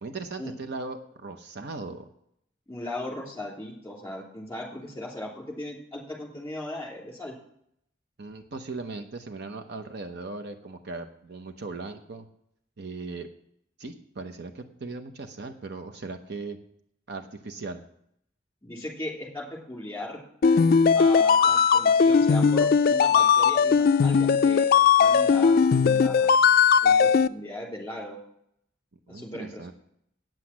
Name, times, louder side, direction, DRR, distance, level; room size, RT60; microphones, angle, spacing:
voice 1, 0.0-2.1 8.2-12.3 12.8-13.3 13.8-16.6 17.1-17.8 29.1-29.7, right 3 dB, 55° right, 7 dB, 0.8 m, -38 dB
voice 2, 2.7-7.3 18.6-20.2 20.9-24.7 25.0-26.4 26.8-28.2 29.1-29.7, left 1 dB, 10° left, -1 dB, 3.2 m, -37 dB
sound 1, 20.4-27.3, left 6 dB, 50° left, 0.3 m, -19 dB
9.0 x 7.9 x 7.3 m, 0.71 s
head